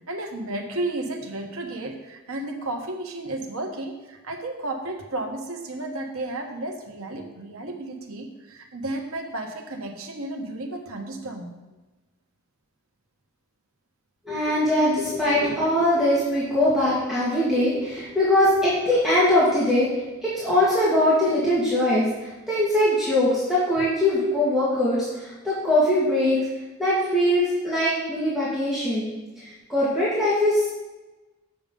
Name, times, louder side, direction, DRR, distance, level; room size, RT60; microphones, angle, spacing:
voice 1, 0.1-11.5, right 2 dB, 85° right, 2 dB, 1.4 m, -33 dB
voice 2, 14.3-26.4 26.8-29.1 29.4-30.7, left 1 dB, ahead, -10 dB, 2.0 m, -22 dB
6.9 x 6.7 x 5.4 m, 1.1 s
head